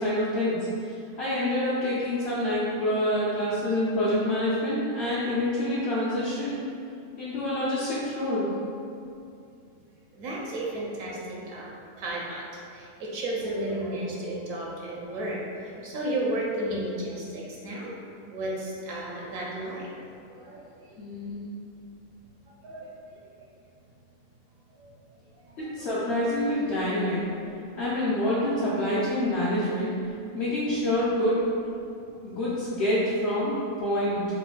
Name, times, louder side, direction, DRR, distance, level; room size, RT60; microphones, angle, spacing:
voice 1, 0.0-6.6 7.2-8.5 21.0-21.4 25.6-27.2 27.8-30.0 30.3-31.4 32.2-34.3, left 1 dB, 65° left, -9 dB, 0.7 m, -27 dB
voice 2, 10.2-12.5 12.7-17.9 18.3-19.9 20.3-21.0 22.6-22.9 24.8-24.9 25.4-26.0, right 1 dB, 70° right, -4 dB, 0.9 m, -33 dB
4.0 x 2.1 x 2.2 m, 2.5 s
omnidirectional pair, 1.5 m